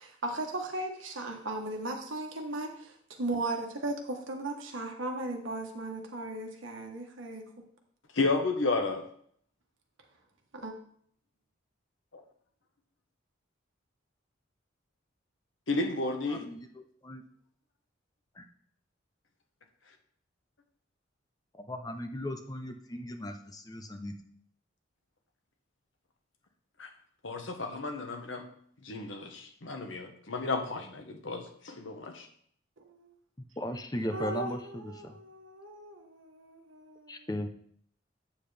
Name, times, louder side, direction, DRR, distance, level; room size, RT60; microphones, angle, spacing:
voice 1, 0.2-7.6 10.5-10.7 32.8-33.1 34.1-37.3, right 2 dB, 80° right, 3 dB, 1.3 m, -37 dB
voice 2, 8.1-9.0 12.1-12.2 15.7-16.5 26.8-26.9 27.2-28.4 28.8-32.3, left 3 dB, 75° left, 4 dB, 1.2 m, -32 dB
voice 3, 16.3-17.2 18.4-18.5 21.5-24.1 33.6-35.1 37.1-37.5, left 1 dB, 20° left, 6 dB, 0.6 m, -37 dB
8.5 x 7.4 x 3.4 m, 0.62 s
head